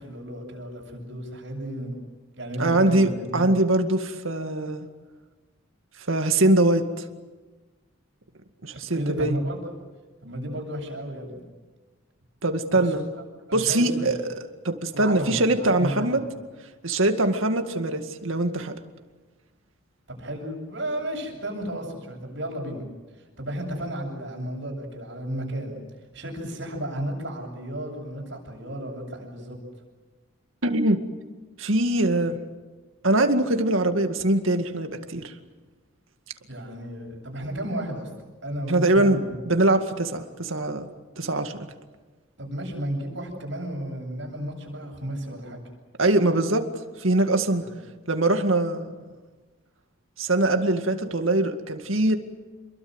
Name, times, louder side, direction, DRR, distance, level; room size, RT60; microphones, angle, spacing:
voice 1, 0.0-1.9 2.4-3.5 8.9-9.7 10.2-11.4 12.7-12.9 13.1-13.2 13.5-14.1 14.9-16.1 20.1-22.9 23.4-25.8 26.1-29.6 36.5-38.1 38.4-39.4 42.4-45.6 47.6-47.7, right 1 dB, 60° right, 1 dB, 8.0 m, -33 dB
voice 2, 2.6-4.9 6.1-6.9 8.6-9.4 12.4-13.0 13.5-16.2 16.8-18.7 30.6-31.0 31.6-32.4 33.0-35.3 38.7-40.9 41.2-41.5 46.0-46.6 47.0-47.6 48.1-48.9 50.2-52.2, right 2 dB, 80° right, 6 dB, 2.1 m, -22 dB
28.5 x 22.5 x 8.1 m, 1.3 s
head